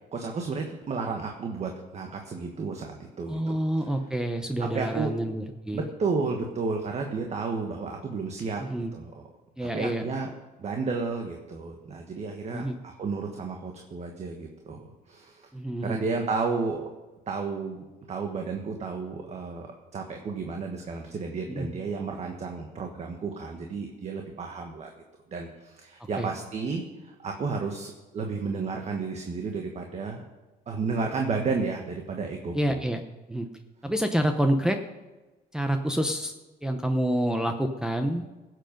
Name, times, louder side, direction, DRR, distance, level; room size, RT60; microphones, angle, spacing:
voice 1, 0.1-3.6 4.7-5.1 5.7-8.6 8.9-9.2 9.6-10.3 10.6-15.5 15.8-16.9 17.3-24.9 25.3-30.2 30.7-32.9, right 4 dB, 40° right, 3 dB, 1.5 m, -32 dB
voice 2, 3.3-5.8 8.6-8.9 9.6-10.1 12.5-12.8 15.5-16.0 21.5-21.7 26.2-26.3 32.5-33.0 33.3-33.5 33.8-34.8 35.5-36.3 36.6-38.2, right 1 dB, 5° right, 3 dB, 0.8 m, -27 dB
17.0 x 8.0 x 5.3 m, 1.2 s
cardioid pair, 110°, 17 cm